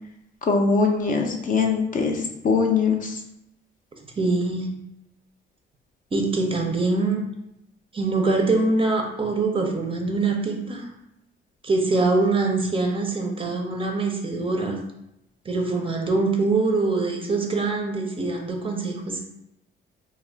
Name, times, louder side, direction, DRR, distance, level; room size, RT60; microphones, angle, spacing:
voice 1, 0.4-3.2, left 4 dB, 45° left, 2 dB, 0.5 m, -22 dB
voice 2, 4.2-4.7 6.1-7.2 7.9-10.9 11.6-14.8 15.5-19.2, right 3 dB, 25° right, 2 dB, 0.5 m, -24 dB
2.3 x 2.1 x 3.4 m, 0.82 s
cardioid pair, 90°, 20 cm